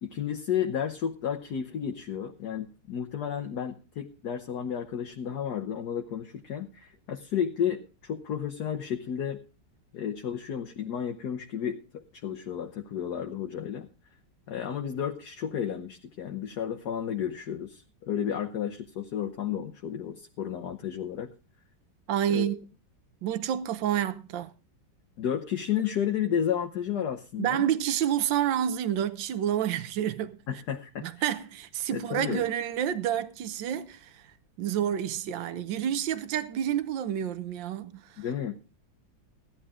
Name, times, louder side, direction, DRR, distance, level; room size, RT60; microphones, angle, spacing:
voice 1, 0.0-9.4 9.9-13.9 14.5-21.3 22.3-22.5 25.2-27.7 30.5-31.1 31.9-32.5 38.2-38.6, left 9 dB, 60° left, 1.5 m, -32 dB
voice 2, 22.1-22.5 23.2-24.5 27.4-30.4 31.0-34.2 34.6-38.0, right 10 dB, 75° right, 1.6 m, -29 dB
16.0 x 11.5 x 3.6 m
omnidirectional pair, 2.0 m